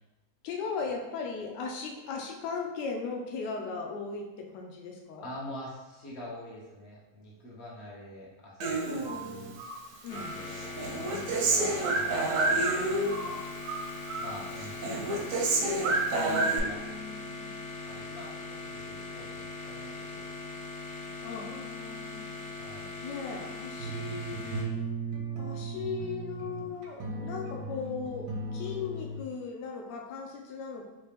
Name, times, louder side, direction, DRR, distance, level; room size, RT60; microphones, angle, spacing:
voice 1, 0.4-5.3 10.0-10.3 16.1-17.4 21.2-22.3 23.0-24.9 25.4-30.9, left 5 dB, 85° left, 1 dB, 1.2 m, -38 dB
voice 2, 5.2-9.5 10.1-13.4 14.2-17.0 17.8-20.4 22.6-22.9, left 1 dB, 50° left, -4 dB, 0.9 m, -46 dB
Human voice, 8.6-9.8 10.1-13.3 13.6-14.3 14.6-16.6, right 2 dB, 70° right, 0.8 m, -29 dB
sound 1, 10.1-24.6, left 3 dB, 70° left, 0.6 m, -41 dB
sound 2, 23.8-29.2, right 3 dB, 90° right, 1.2 m, -37 dB
3.2 x 3.0 x 3.4 m, 1.0 s
omnidirectional pair, 1.8 m